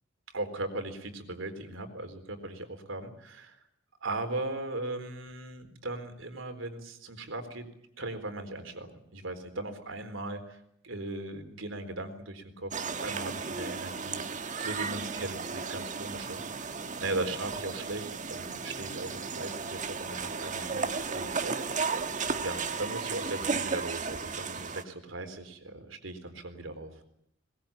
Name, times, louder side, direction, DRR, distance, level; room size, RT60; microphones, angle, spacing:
voice 1, 0.3-3.6 4.0-7.7 8.0-10.6 10.8-12.7 13.0-16.8 17.0-22.1 22.4-27.0, right 2 dB, 75° right, 7 dB, 4.0 m, -38 dB
sound 1, 12.7-24.8, right 5 dB, 40° right, 1.5 m, -34 dB
22.0 x 20.5 x 8.7 m, 0.75 s
head